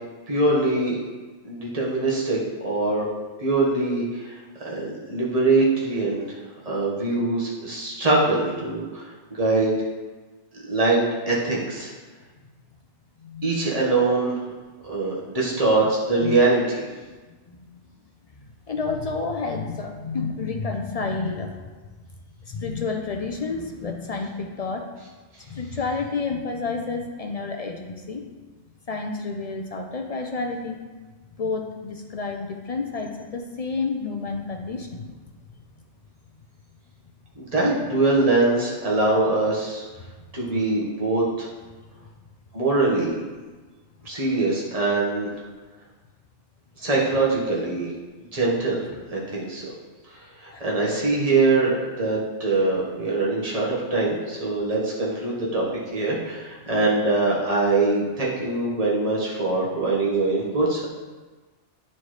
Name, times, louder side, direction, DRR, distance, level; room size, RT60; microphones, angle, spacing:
voice 1, 0.3-1.0 1.4-2.4 2.6-3.0 3.4-4.4 4.6-6.2 6.6-9.7 10.7-11.9 13.4-14.5 14.8-16.8 37.4-39.8 40.3-41.5 42.5-43.2 44.0-45.3 46.8-47.9 48.3-48.8 49.1-49.7 50.4-55.6 55.9-60.9, right 3 dB, 30° right, -5 dB, 1.4 m, -23 dB
voice 2, 13.2-13.7 16.2-16.4 17.5-17.9 18.3-21.5 22.5-24.9 25.5-28.2 28.9-30.8 31.4-35.1 50.5-50.6, left 4 dB, 50° left, 3 dB, 0.4 m, -30 dB
9.6 x 4.3 x 3.2 m, 1.3 s
omnidirectional pair, 1.2 m